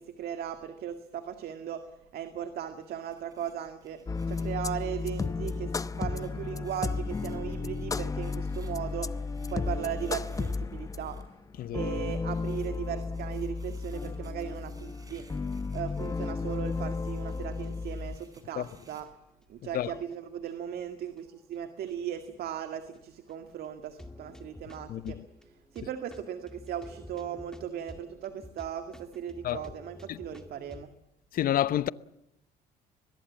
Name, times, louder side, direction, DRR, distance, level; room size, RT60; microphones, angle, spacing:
voice 1, 0.0-1.8 2.1-4.0 4.3-5.7 6.0-11.2 11.7-15.3 15.7-19.1 19.5-25.2 25.7-30.9, right 9 dB, 65° right, 2.0 m, -37 dB
sound 1, 2.8-11.2 11.9-19.0, right 3 dB, 20° right, 5.6 m, -58 dB
sound 2, 4.1-18.2, left 4 dB, 20° left, 0.8 m, -33 dB
sound 3, 15.5-16.3 16.6-16.7 17.3-17.4 17.6-17.7 18.2-19.1 19.8-20.1 20.4-20.5 21.2-21.6 21.9-22.0 22.2-22.3 22.9-23.0 23.3-23.4 23.8-30.9, left 1 dB, 5° left, 2.2 m, -50 dB
voice 2, 24.9-25.2 29.4-29.6 30.1-30.2 31.3-31.9, left 12 dB, 60° left, 0.8 m, -29 dB
23.0 x 21.0 x 7.4 m
cardioid pair, 110°, 17 cm